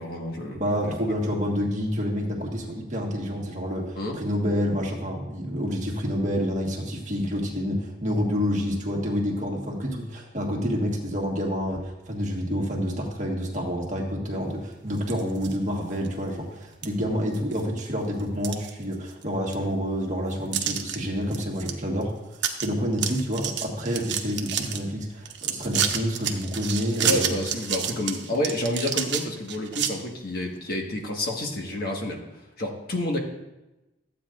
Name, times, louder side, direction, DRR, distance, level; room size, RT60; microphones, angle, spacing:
voice 1, 0.0-0.9 3.9-4.2 27.0-32.2 32.6-33.2, left 1 dB, 50° left, 0 dB, 1.5 m, -29 dB
voice 2, 0.5-22.1 22.6-27.4, equal, 40° right, -1 dB, 1.5 m, -28 dB
sound 1, 15.0-15.6 16.0-16.1 16.8-16.9 17.3-17.8 18.2-19.2 19.5-19.6 20.5-20.9 21.3-21.7 22.0-22.1 22.3-22.7 22.9-24.8 25.2-29.9, right 8 dB, 70° right, 0.9 m, -29 dB
14.0 x 8.6 x 2.5 m, 0.98 s
head